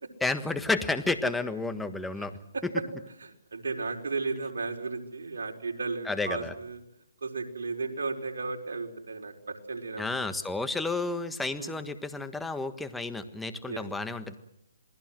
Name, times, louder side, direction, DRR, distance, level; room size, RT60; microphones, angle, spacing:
voice 1, 0.2-2.3 6.0-6.5 10.0-14.3, left 3 dB, 5° left, 10 dB, 1.5 m, -31 dB
voice 2, 3.2-6.8 7.2-10.3 11.6-11.7 13.7-13.8, right 4 dB, 75° right, 2 dB, 5.1 m, -34 dB
28.0 x 20.0 x 7.6 m, 0.82 s
hypercardioid pair, 150°, 0 cm